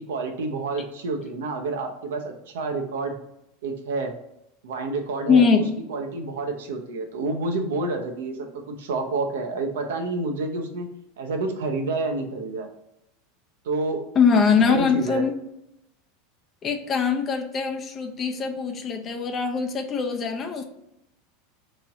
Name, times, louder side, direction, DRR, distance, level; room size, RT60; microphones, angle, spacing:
voice 1, 0.0-3.1 3.6-4.1 4.6-5.6 5.9-10.9 11.2-12.7 13.6-14.0 14.7-15.2, right 3 dB, 80° right, 4 dB, 0.6 m, -29 dB
voice 2, 5.3-5.7 14.2-15.4 16.6-20.6, left 5 dB, 35° left, 4 dB, 0.6 m, -22 dB
3.1 x 2.9 x 3.6 m, 0.83 s
hypercardioid pair, 105°, 0 cm